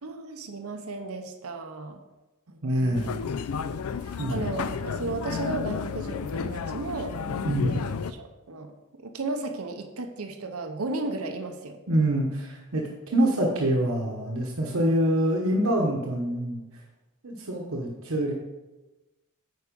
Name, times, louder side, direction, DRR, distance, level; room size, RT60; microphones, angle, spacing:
voice 1, 0.0-2.0 2.5-3.1 3.7-7.2 7.7-11.8, right 3 dB, 90° right, 5 dB, 0.8 m, -35 dB
voice 2, 2.6-3.2 4.2-4.5 7.4-7.9 11.9-16.6 17.2-18.3, right 1 dB, 75° right, -1 dB, 1.1 m, -25 dB
sound 1, 2.9-8.1, left 6 dB, 85° left, 0.4 m, -32 dB
9.4 x 4.8 x 5.2 m, 1.1 s
head